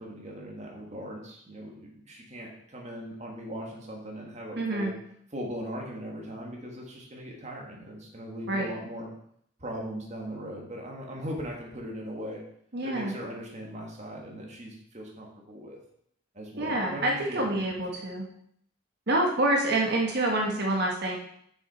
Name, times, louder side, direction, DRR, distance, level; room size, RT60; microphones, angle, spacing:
voice 1, 0.0-5.0 5.3-9.1 9.6-12.4 12.8-15.8 16.3-17.8, equal, 35° right, -1 dB, 1.7 m, -39 dB
voice 2, 4.6-4.9 8.5-8.7 12.7-13.1 16.6-18.3 19.1-21.2, right 1 dB, 50° right, 0 dB, 1.3 m, -27 dB
6.7 x 6.3 x 4.3 m, 0.69 s
head